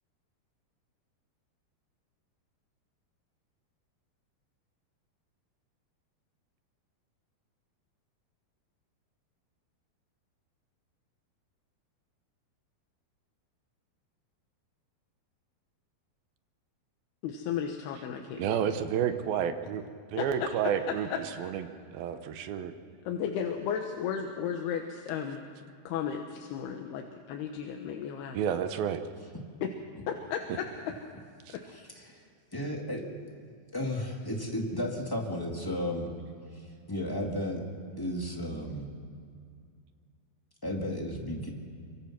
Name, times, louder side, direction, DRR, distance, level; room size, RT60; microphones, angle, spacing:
voice 1, 17.2-18.7 20.2-20.5 20.9-21.2 23.1-25.4 25.8-28.4 29.6-29.7 30.1-30.7, left 8 dB, 85° left, 3 dB, 3.2 m, -34 dB
voice 2, 18.4-19.8 20.1-22.7 28.3-29.0 31.5-31.6, right 8 dB, 75° right, 9 dB, 2.7 m, -30 dB
voice 3, 31.6-33.0 33.7-36.1 36.5-37.6 38.0-38.9 40.6-41.5, left 1 dB, 15° left, 0 dB, 0.6 m, -34 dB
25.0 x 24.5 x 6.0 m, 2.3 s
omnidirectional pair, 4.5 m